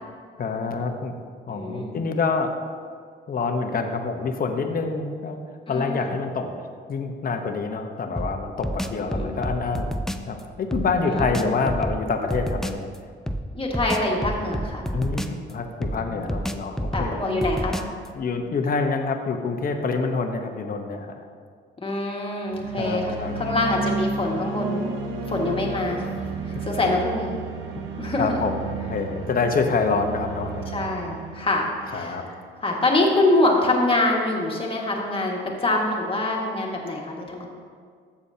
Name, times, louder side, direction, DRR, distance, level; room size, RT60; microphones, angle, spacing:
voice 1, 0.4-1.1 1.5-2.5 3.3-5.4 5.7-6.5 6.9-9.9 10.2-12.9 14.9-17.1 18.1-21.2 22.8-23.4 28.2-30.8 31.9-32.2, left 4 dB, 45° left, 5 dB, 1.0 m, -26 dB
voice 2, 1.5-1.9 5.7-6.2 9.0-9.4 11.0-11.6 13.5-14.9 16.0-16.3 16.9-17.8 21.8-24.9 25.3-27.4 28.0-28.4 30.7-32.3 32.6-37.5, left 2 dB, 25° left, -1 dB, 1.8 m, -25 dB
sound 1, 8.2-10.3 10.7-12.8 13.3-15.5 15.8-18.1, equal, ahead, 0.4 m, -30 dB
sound 2, 22.5-32.6, right 3 dB, 90° right, 0.9 m, -32 dB
13.5 x 7.1 x 2.8 m, 2.1 s
cardioid pair, 90°, 20 cm